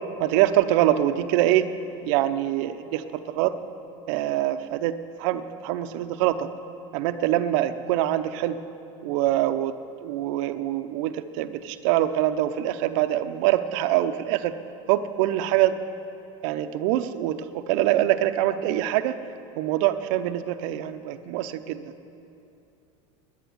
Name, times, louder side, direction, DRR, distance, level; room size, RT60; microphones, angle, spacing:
voice 1, 0.2-1.7 2.0-3.5 4.1-6.5 6.9-8.6 9.0-9.7 10.0-14.5 14.9-15.7 16.4-19.2 19.6-21.8, right 13 dB, 70° right, 10 dB, 0.7 m, -24 dB
10.5 x 10.5 x 9.4 m, 2.7 s
supercardioid pair, 105°, 17 cm